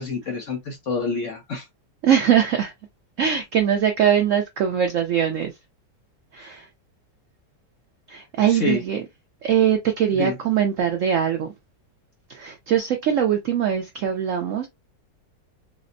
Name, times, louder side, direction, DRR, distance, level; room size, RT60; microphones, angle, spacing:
voice 1, 0.0-1.7 6.4-6.6 8.5-8.8 10.1-10.4, left 3 dB, 55° left, 0.9 m, -28 dB
voice 2, 2.0-2.7 3.2-5.5 6.3-6.7 8.1-9.0 9.4-11.5 12.3-14.7, right 9 dB, 75° right, 0.7 m, -21 dB
4.2 x 2.0 x 2.5 m
omnidirectional pair, 1.9 m